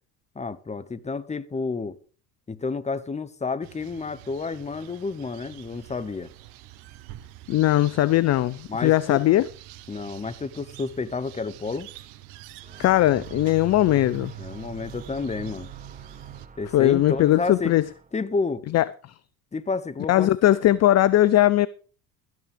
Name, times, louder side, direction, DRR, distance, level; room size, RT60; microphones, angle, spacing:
voice 1, 0.3-2.0 2.5-6.3 8.7-9.2 9.9-11.9 14.4-15.7 16.6-17.7 18.1-18.7 19.5-20.3, left 4 dB, 15° left, 1.0 m, -30 dB
sound 1, 3.6-16.5, right 14 dB, 70° right, 1.2 m, -44 dB
voice 2, 7.5-9.5 12.8-14.3 16.7-17.9 18.7-18.9 20.1-21.7, left 14 dB, 35° left, 0.5 m, -19 dB
sound 2, 12.6-18.3, right 4 dB, 20° right, 1.2 m, -48 dB
13.0 x 9.3 x 5.2 m
hypercardioid pair, 75°, 45 cm